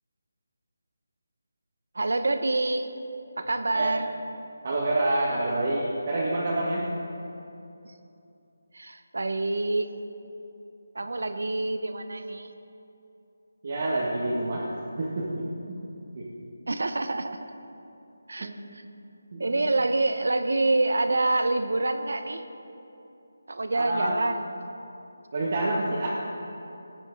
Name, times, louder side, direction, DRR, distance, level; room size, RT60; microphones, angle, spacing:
voice 1, 1.9-2.9 3.4-4.1 7.8-7.9 8.7-9.9 10.9-12.5 16.7-17.5 18.3-18.8 19.4-22.4 23.5-24.5, right 2 dB, 75° right, 9 dB, 0.9 m, -27 dB
voice 2, 4.6-6.9 11.0-11.2 13.6-15.4 16.1-16.2 18.4-18.7 19.3-19.5 23.7-24.1 25.3-26.1, right 2 dB, 50° right, -6 dB, 1.7 m, -27 dB
18.5 x 9.1 x 4.0 m, 2.8 s
figure-of-eight pair, 165°, 0 cm